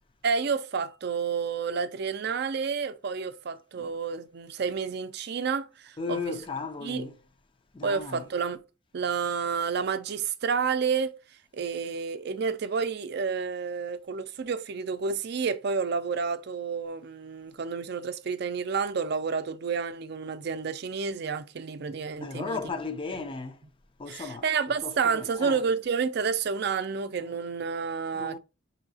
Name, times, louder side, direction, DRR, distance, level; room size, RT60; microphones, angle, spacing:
voice 1, 0.2-6.4 6.8-7.1 7.8-8.6 8.9-11.1 11.5-22.6 24.1-28.4, right 5 dB, 55° right, 0.5 m, -30 dB
voice 2, 6.0-7.2 7.7-8.3 22.2-23.6 24.0-24.4 24.8-25.6 27.3-27.4 28.1-28.4, left 4 dB, 25° left, 0.4 m, -35 dB
6.1 x 2.8 x 2.7 m
head